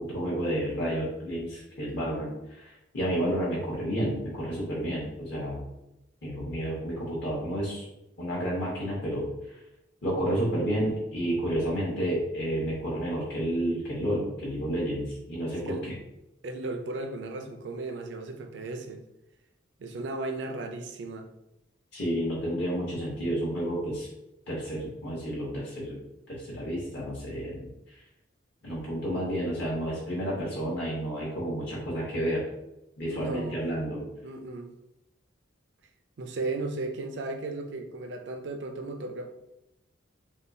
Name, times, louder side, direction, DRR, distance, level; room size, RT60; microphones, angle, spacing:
voice 1, 0.0-5.6 6.2-7.9 8.2-9.3 10.0-16.0 21.9-24.1 24.5-26.0 26.3-27.7 28.6-32.5 33.0-34.1, right 1 dB, 55° left, -6 dB, 0.9 m, -30 dB
voice 2, 15.5-15.9 16.4-19.0 19.8-21.3 33.0-33.6 34.2-34.7 36.2-39.3, right 2 dB, 60° right, 5 dB, 0.4 m, -35 dB
3.5 x 2.2 x 2.6 m, 0.90 s
head